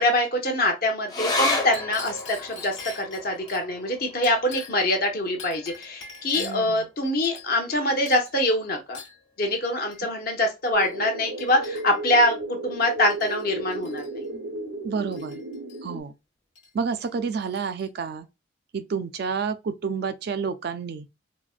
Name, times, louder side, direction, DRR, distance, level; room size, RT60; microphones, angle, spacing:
voice 1, 0.0-9.0 9.4-14.2, left 1 dB, 45° left, 0.8 m, -24 dB
sound 1, 1.1-7.9 8.2-8.3 8.6-9.3 9.9-10.0, left 2 dB, 20° left, 0.4 m, -33 dB
Chink clink, 1.6-3.6 4.2-4.9 5.4-6.7 7.2-7.8 8.1-8.4 8.9-9.2 9.9-10.1 10.8-11.0 11.4-12.1 12.8-13.4 13.7-14.1 15.1-15.8 16.6-16.7 17.0-17.9, left 4 dB, 70° left, 1.3 m, -43 dB
voice 2, 6.3-6.9 14.8-15.4 15.8-16.1 16.7-18.3 18.7-21.1, right 5 dB, 50° right, 0.3 m, -29 dB
sound 2, 10.7-16.0, right 2 dB, 90° right, 0.6 m, -34 dB
4.1 x 2.1 x 2.3 m
head